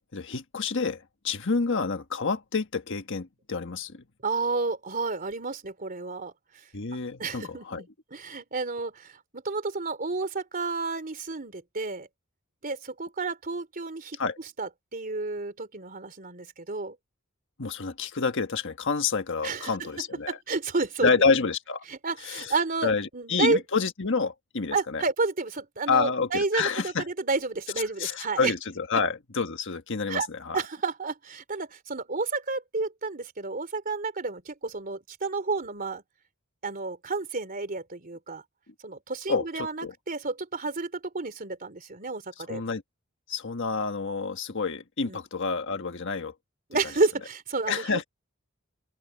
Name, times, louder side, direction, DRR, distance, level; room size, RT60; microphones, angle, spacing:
voice 1, 0.1-4.0 6.7-7.8 14.2-14.3 17.6-20.4 21.0-21.8 22.3-22.4 22.8-25.0 25.9-27.0 28.0-30.6 39.3-39.4 39.8-39.9 42.5-42.8 43.3-46.3 47.7-48.0, left 4 dB, 60° left, 1.4 m, -28 dB
voice 2, 4.2-6.3 7.2-12.1 12.6-17.0 19.4-21.2 21.8-23.6 24.7-28.6 28.9-29.0 30.1-30.3 30.5-36.0 36.6-38.4 38.8-42.6 45.0-45.3 46.7-48.1, right 3 dB, 45° right, 3.3 m, -31 dB
open air
head